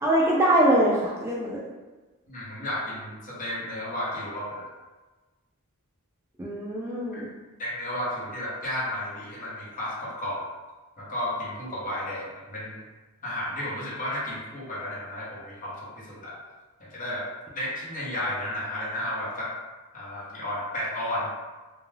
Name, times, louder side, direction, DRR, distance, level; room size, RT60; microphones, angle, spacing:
voice 1, 0.0-1.6 6.4-7.3, right 1 dB, 10° right, -5 dB, 0.3 m, -23 dB
voice 2, 2.3-4.7 7.1-7.2 7.6-10.4 11.0-12.8 13.2-16.4 16.8-17.3 17.5-19.6 19.9-21.3, left 1 dB, 35° left, -6 dB, 0.8 m, -33 dB
2.3 x 2.2 x 3.2 m, 1.2 s
head